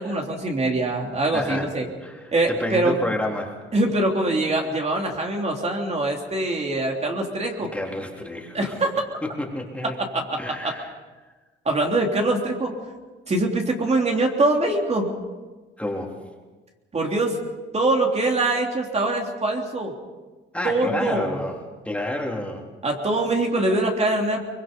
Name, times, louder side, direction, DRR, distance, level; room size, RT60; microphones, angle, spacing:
voice 1, 0.0-1.9 2.3-2.9 3.7-7.7 8.5-8.9 10.1-10.2 10.6-10.7 11.6-12.7 13.3-15.1 16.9-17.4 17.7-19.9 20.6-21.4 22.8-24.4, right 2 dB, 35° right, 1 dB, 3.4 m, -23 dB
voice 2, 1.3-1.7 2.0-3.6 7.7-8.8 9.2-10.0 10.4-10.9 15.8-16.2 20.5-21.6 21.9-22.6, left 1 dB, 5° left, 0 dB, 3.7 m, -29 dB
24.0 x 21.5 x 5.5 m, 1.3 s
cardioid pair, 90°, 20 cm